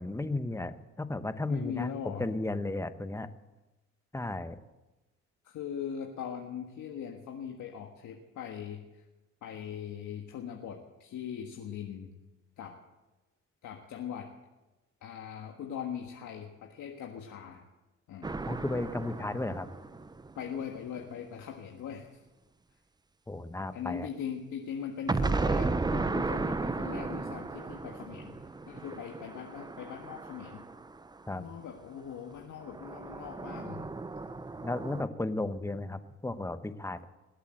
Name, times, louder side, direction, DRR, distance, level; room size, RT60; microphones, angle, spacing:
voice 1, 0.0-3.3 4.1-4.6 18.5-19.7 23.3-24.1 31.3-31.4 34.6-37.1, left 2 dB, 10° left, 11 dB, 1.0 m, -34 dB
voice 2, 1.5-2.2 5.4-9.0 9.4-12.1 12.6-12.8 13.6-14.3 15.0-17.6 18.1-18.3 20.3-22.1 23.7-28.3 28.7-30.6 31.3-33.8, left 8 dB, 75° left, 1 dB, 1.6 m, -40 dB
sound 1, 18.2-21.0 25.1-31.3 32.6-35.0, right 3 dB, 15° right, 0.6 m, -34 dB
20.5 x 8.4 x 7.7 m, 1.1 s
cardioid pair, 90°, 30 cm